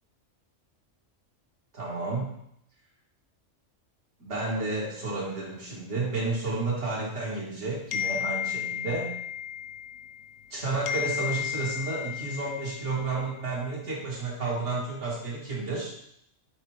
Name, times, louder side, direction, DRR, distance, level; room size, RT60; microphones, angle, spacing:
voice 1, 1.7-2.3 4.2-9.1 10.5-15.9, right 3 dB, 65° right, -6 dB, 2.1 m, -31 dB
sound 1, 7.9-10.5 10.9-13.4, left 9 dB, 90° left, 1.0 m, -34 dB
8.7 x 3.6 x 3.5 m, 0.74 s
omnidirectional pair, 1.3 m